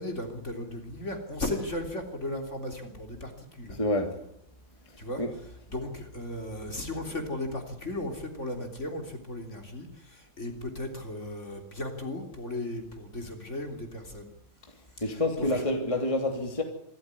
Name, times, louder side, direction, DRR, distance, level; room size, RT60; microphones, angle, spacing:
voice 1, 0.0-3.8 5.0-5.2 5.7-14.3 15.0-15.6, left 1 dB, 35° left, 4 dB, 3.8 m, -36 dB
voice 2, 3.7-4.1 5.2-5.3 15.0-16.6, left 1 dB, 15° left, 3 dB, 2.9 m, -27 dB
26.5 x 14.0 x 9.9 m, 0.74 s
omnidirectional pair, 2.2 m